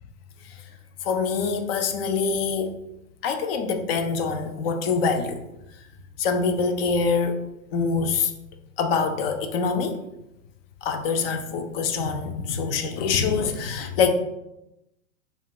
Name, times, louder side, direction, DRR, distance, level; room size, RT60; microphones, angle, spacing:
voice 1, 1.0-2.8 3.2-5.4 6.2-7.4 7.7-8.3 8.8-10.0 10.8-14.1, left 5 dB, 45° left, 7 dB, 0.6 m, -25 dB
7.0 x 2.5 x 2.3 m, 0.89 s
figure-of-eight pair, 100°, 39 cm